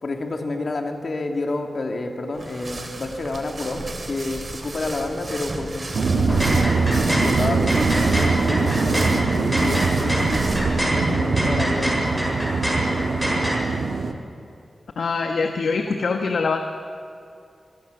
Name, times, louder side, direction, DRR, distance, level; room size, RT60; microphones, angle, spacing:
voice 1, 0.0-6.7 7.1-10.4 10.9-12.3, left 2 dB, 55° left, 3 dB, 3.1 m, -29 dB
sound 1, 2.3-10.9, right 2 dB, 40° right, 3.3 m, -34 dB
sound 2, 5.9-14.1, right 4 dB, 80° right, 1.9 m, -22 dB
sound 3, 6.2-13.6, equal, ahead, 7.7 m, -26 dB
voice 2, 15.0-16.6, left 4 dB, 80° left, 4 dB, 1.5 m, -23 dB
27.0 x 23.0 x 7.1 m, 2.5 s
wide cardioid pair, 90°, 0 cm